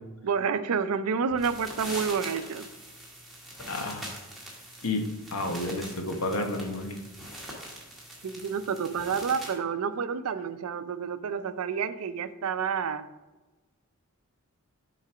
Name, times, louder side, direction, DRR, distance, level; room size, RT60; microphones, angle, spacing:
voice 1, 0.2-2.7 8.2-13.1, right 6 dB, 85° right, 12 dB, 0.4 m, -29 dB
sound 1, 1.3-9.6, right 1 dB, ahead, 1.7 m, -43 dB
voice 2, 3.7-4.1 4.8-5.0 5.3-7.0, left 2 dB, 80° left, 4 dB, 1.0 m, -31 dB
7.3 x 3.9 x 4.9 m, 1.1 s
head